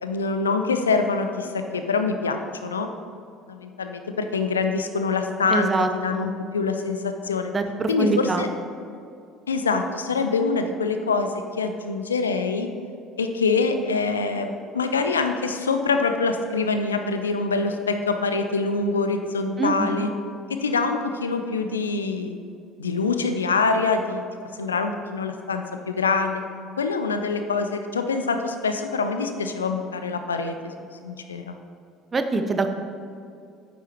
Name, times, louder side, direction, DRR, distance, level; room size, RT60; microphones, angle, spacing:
voice 1, 0.0-2.9 3.5-5.7 6.0-7.5 7.9-8.5 9.5-11.3 11.6-12.7 13.2-20.1 20.5-22.4 22.8-24.2 24.5-26.4 26.8-30.7 31.0-31.6, left 4 dB, 80° left, 7 dB, 0.5 m, -25 dB
voice 2, 5.5-6.4 7.5-8.5 19.6-20.0 32.1-32.7, right 3 dB, 30° right, 7 dB, 0.7 m, -24 dB
9.3 x 8.2 x 3.0 m, 2.5 s
figure-of-eight pair, 60°, 0 cm